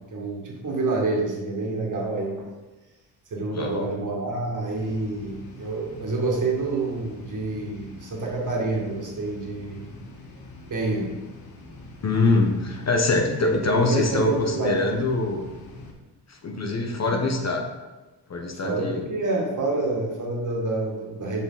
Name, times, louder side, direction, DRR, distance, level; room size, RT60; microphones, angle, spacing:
voice 1, 0.1-2.5 3.3-9.9 10.7-11.1 13.4-14.8 17.0-17.1 18.6-21.4, right 3 dB, 50° right, -2 dB, 2.2 m, -28 dB
voice 2, 3.5-3.9 12.0-15.4 16.3-17.6 18.3-19.1, left 3 dB, 40° left, 3 dB, 1.1 m, -24 dB
sound 1, 4.7-15.9, left 1 dB, 60° left, 1.4 m, -45 dB
7.0 x 5.1 x 4.0 m, 1.2 s
cardioid pair, 70°, 40 cm